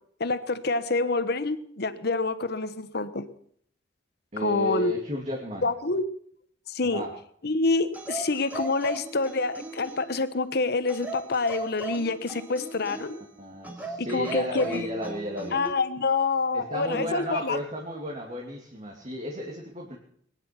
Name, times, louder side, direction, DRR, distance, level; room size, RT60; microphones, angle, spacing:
voice 1, 0.2-3.3 4.4-4.9 5.6-6.0 6.7-7.0 7.4-13.2 14.1-14.9 15.5-17.6, left 3 dB, 60° left, 13 dB, 1.2 m, -27 dB
voice 2, 4.3-5.6 6.8-7.1 13.1-15.6 16.5-20.0, equal, 35° right, -1 dB, 2.7 m, -33 dB
sound 1, 7.9-10.2 10.9-13.2 13.6-15.8 16.9-17.2, right 2 dB, 10° right, 2.9 m, -38 dB
21.5 x 10.5 x 6.0 m, 0.63 s
head